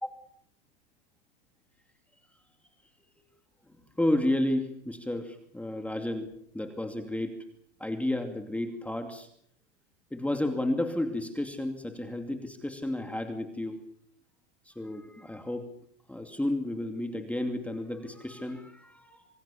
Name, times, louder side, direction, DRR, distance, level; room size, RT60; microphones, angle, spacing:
voice 1, 3.7-7.4 7.8-9.3 10.1-13.8 14.7-15.7 16.1-19.3, left 1 dB, 5° left, 5 dB, 2.6 m, -32 dB
27.0 x 22.0 x 7.1 m, 0.67 s
supercardioid pair, 125°, 35 cm